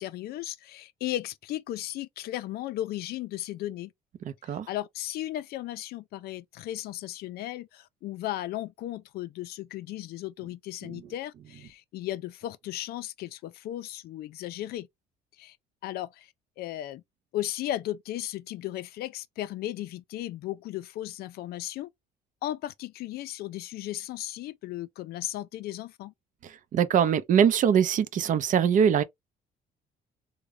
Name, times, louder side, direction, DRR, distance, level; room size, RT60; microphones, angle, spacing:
voice 1, 0.0-3.9 4.4-14.9 15.4-15.6 15.8-17.0 17.3-21.9 22.4-26.1, left 14 dB, 70° left, 0.4 m, -35 dB
voice 2, 4.2-4.7 10.8-11.0 26.4-29.0, right 8 dB, 50° right, 0.5 m, -23 dB
3.5 x 2.1 x 3.2 m
cardioid pair, 110°, 17 cm